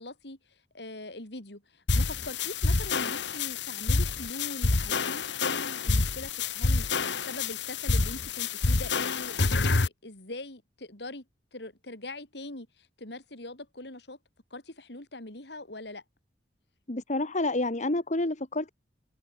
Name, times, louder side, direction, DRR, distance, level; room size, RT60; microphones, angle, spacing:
voice 1, 0.0-6.9 7.3-11.3 11.5-14.2 14.5-16.0, left 2 dB, 70° left, 4.2 m, -42 dB
sound 1, 1.9-9.9, left 3 dB, 85° left, 1.4 m, -28 dB
voice 2, 16.9-18.7, left 2 dB, 45° left, 1.9 m, -29 dB
head